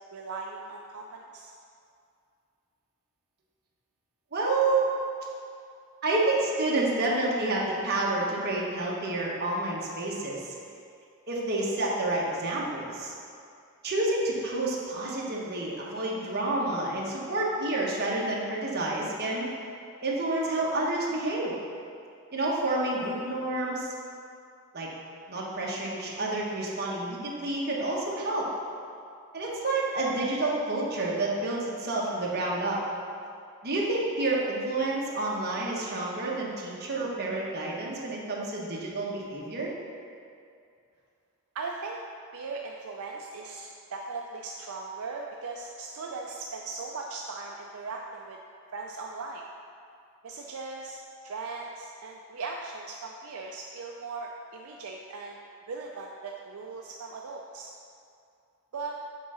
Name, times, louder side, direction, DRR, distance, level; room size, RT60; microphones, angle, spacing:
voice 1, 0.0-1.5 41.5-42.0 42.3-48.4 48.7-49.4 50.2-55.4 55.7-57.7 58.7-58.9, right 4 dB, 75° right, 0 dB, 0.5 m, -38 dB
voice 2, 4.3-4.9 6.0-10.5 11.3-13.1 13.8-19.5 20.0-21.6 22.3-23.9 24.7-24.9 25.3-28.5 29.3-32.8 33.6-39.7, right 2 dB, 45° right, -4 dB, 1.2 m, -29 dB
7.2 x 3.7 x 5.5 m, 2.4 s
head